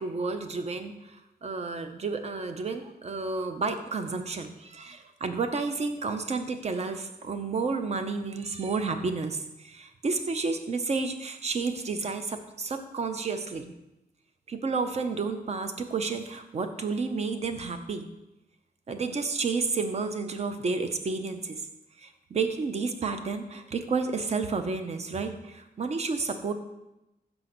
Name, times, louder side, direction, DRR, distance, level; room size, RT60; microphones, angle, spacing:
voice 1, 0.0-13.7 14.5-18.1 18.9-21.6 22.0-26.5, right 4 dB, 40° right, 7 dB, 0.5 m, -31 dB
5.7 x 3.9 x 5.9 m, 0.94 s
wide cardioid pair, 175°, 17 cm